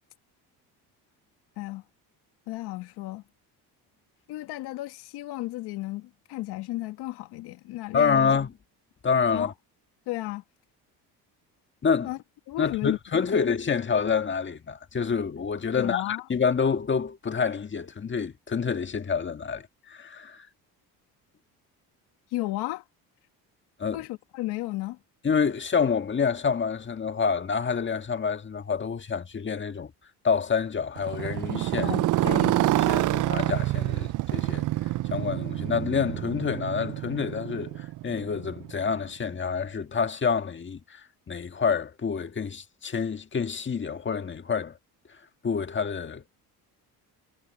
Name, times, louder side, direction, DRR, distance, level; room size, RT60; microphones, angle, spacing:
voice 1, 2.5-3.2 4.3-8.4 9.3-9.5 10.1-10.4 12.0-12.2 12.5-13.0 13.3-13.5 15.8-16.2 22.3-22.8 23.9-25.0 31.8-32.9, left 18 dB, 80° left, 1.9 m, -34 dB
voice 2, 7.9-8.5 9.0-9.5 11.8-12.1 12.6-20.5 23.8-24.0 25.2-29.9 30.2-32.0 32.7-44.8 45.1-46.3, left 6 dB, 30° left, 1.7 m, -28 dB
Motorcycle, 31.0-39.0, right 16 dB, 50° right, 0.5 m, -27 dB
cardioid pair, 95°, 39 cm